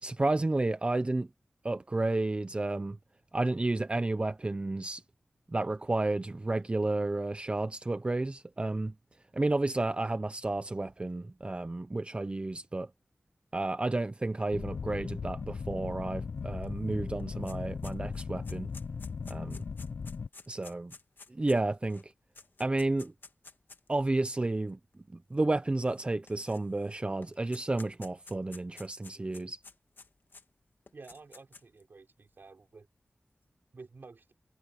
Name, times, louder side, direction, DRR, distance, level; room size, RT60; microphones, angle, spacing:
voice 1, 0.0-1.3 1.6-3.0 3.3-5.0 5.5-8.9 9.3-12.9 13.5-18.7 19.3-19.6 20.5-20.9 21.3-22.1 22.6-23.1 23.9-24.8 25.3-29.6, right 2 dB, 30° right, 0.6 m, -31 dB
sound 1, 14.5-20.3, left 5 dB, 80° left, 0.6 m, -38 dB
sound 2, 16.6-16.7 17.0-23.9 24.7-24.8 25.9-26.9 27.2-30.4 30.9-31.8, left 3 dB, 60° left, 1.7 m, -52 dB
voice 2, 30.9-32.9 33.7-34.3, right 4 dB, 65° right, 5.7 m, -51 dB
wide cardioid pair, 75°, 4 cm